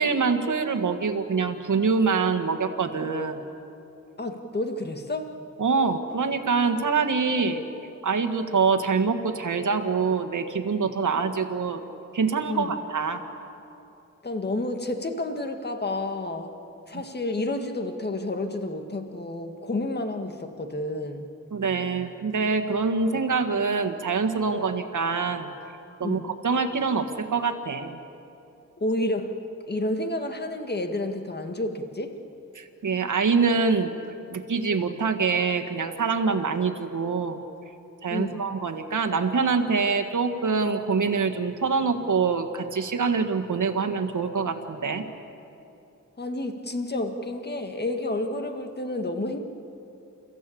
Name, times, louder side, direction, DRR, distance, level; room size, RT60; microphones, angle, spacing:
voice 1, 0.0-3.4 5.6-7.6 8.0-11.8 12.1-13.2 21.5-25.5 26.0-28.0 32.5-33.9 34.3-37.4 38.0-45.0, right 5 dB, 70° right, 6 dB, 1.7 m, -25 dB
voice 2, 4.2-5.3 12.5-12.7 14.2-16.5 16.9-21.3 26.0-26.3 28.8-29.4 29.7-32.2 38.1-38.5 46.2-49.4, left 2 dB, 35° left, 6 dB, 1.8 m, -30 dB
30.0 x 15.5 x 8.6 m, 2.8 s
wide cardioid pair, 105°, 31 cm